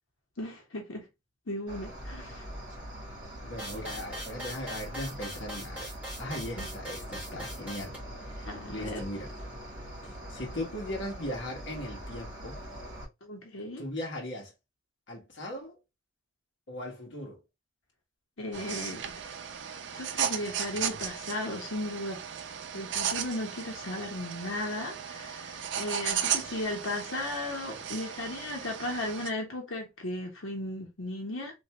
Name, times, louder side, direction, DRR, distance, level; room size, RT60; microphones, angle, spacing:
voice 1, 0.4-1.1 1.5-2.5 6.6-6.7 8.4-9.0 13.2-13.8 18.4-19.4 19.9-22.2 22.7-31.6, left 1 dB, 85° left, 1.1 m, -36 dB
Cricket, 1.7-13.1, equal, 25° right, 2.0 m, -43 dB
voice 2, 3.4-5.9 6.2-9.3 10.0-12.6 13.8-14.5 15.1-15.8 16.7-17.4, left 1 dB, 65° left, 1.2 m, -38 dB
sound 1, 3.6-8.0, equal, 5° right, 1.8 m, -41 dB
sound 2, 18.5-29.3, right 8 dB, 60° right, 0.5 m, -35 dB
3.3 x 2.6 x 2.8 m
head